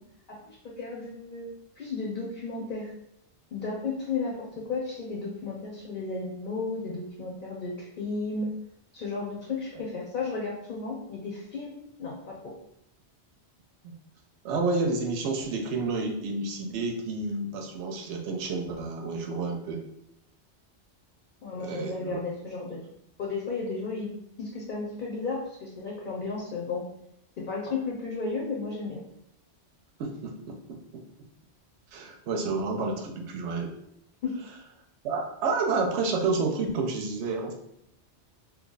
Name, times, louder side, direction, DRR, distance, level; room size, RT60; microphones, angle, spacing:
voice 1, 0.3-2.9 3.5-8.5 8.9-12.3 21.4-22.8 23.2-24.1 24.4-26.8 27.4-29.0 34.2-34.3, left 4 dB, 55° left, -2 dB, 0.7 m, -34 dB
voice 2, 14.4-19.8 21.5-22.2 30.0-30.8 31.9-33.7 35.0-37.5, right 3 dB, 80° right, 2 dB, 0.9 m, -30 dB
3.0 x 2.3 x 3.8 m, 0.77 s
omnidirectional pair, 1.2 m